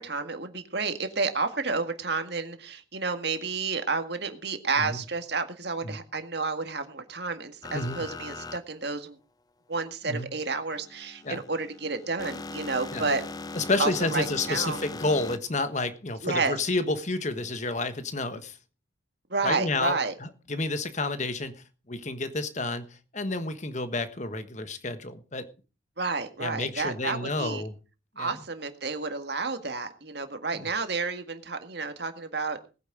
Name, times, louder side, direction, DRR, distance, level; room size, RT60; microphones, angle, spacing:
voice 1, 0.0-9.2 9.7-13.2 13.8-14.8 16.2-16.6 19.3-20.1 26.0-27.6 28.2-32.7, right 4 dB, 55° right, 1.9 m, -30 dB
sound 1, 7.6-8.6 10.7-15.4, left 3 dB, 20° left, 0.6 m, -39 dB
voice 2, 7.7-8.0 10.1-10.3 11.2-11.4 12.9-13.1 13.5-18.6 19.4-25.5 26.4-27.7 28.2-28.3 30.6-30.7, left 2 dB, 35° left, 1.4 m, -30 dB
19.5 x 9.4 x 5.0 m
head